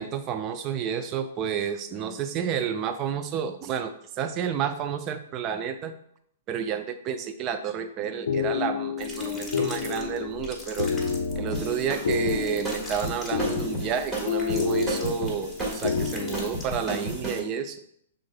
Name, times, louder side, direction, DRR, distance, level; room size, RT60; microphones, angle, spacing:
voice 1, 0.0-5.9 6.5-10.9 11.4-17.8, right 8 dB, 30° right, 8 dB, 0.5 m, -30 dB
sound 1, 8.0-16.5, left 6 dB, 65° left, 0.5 m, -30 dB
sound 2, 9.0-17.0, left 2 dB, 5° left, 1.4 m, -43 dB
sound 3, 11.5-17.4, right 1 dB, 15° right, 1.7 m, -33 dB
6.2 x 3.8 x 2.2 m, 0.67 s
figure-of-eight pair, 115°, 0 cm